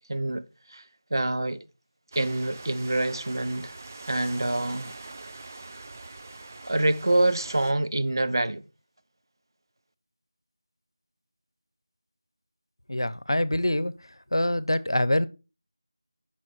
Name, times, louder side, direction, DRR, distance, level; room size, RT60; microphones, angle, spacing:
voice 1, 0.1-0.4 0.7-0.8 1.1-1.6 2.1-3.7 4.1-4.9 6.6-8.6, right 2 dB, 60° right, 0.9 m, -26 dB
sound 1, 2.1-7.7, right 2 dB, 30° right, 0.8 m, -43 dB
voice 2, 12.9-13.9 14.3-15.3, left 1 dB, 85° left, 0.9 m, -25 dB
10.0 x 6.0 x 4.5 m
figure-of-eight pair, 170°, 2 cm